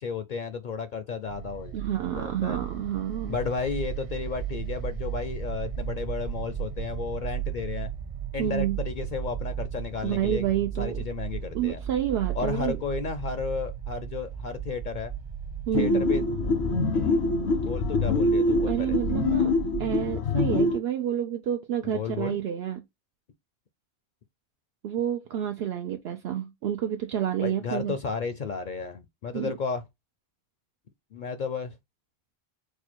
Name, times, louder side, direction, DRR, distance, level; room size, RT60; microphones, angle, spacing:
voice 1, 0.0-1.7 2.2-2.6 3.3-7.9 8.3-10.5 10.8-11.8 12.3-15.1 15.7-16.2 16.9-17.2 17.6-19.0 21.8-22.4 27.4-29.8 31.1-31.8, left 5 dB, 55° left, 0.6 m, -33 dB
sound 1, 1.3-20.0, right 9 dB, 40° right, 0.5 m, -35 dB
voice 2, 1.7-3.4 8.4-8.8 10.0-11.0 11.5-12.8 15.7-16.1 18.7-19.5 19.8-22.8 24.8-27.9 29.3-29.5, right 10 dB, 75° right, 0.8 m, -29 dB
sound 2, 15.7-20.8, left 3 dB, 80° left, 0.9 m, -25 dB
4.4 x 2.3 x 4.3 m
omnidirectional pair, 1.1 m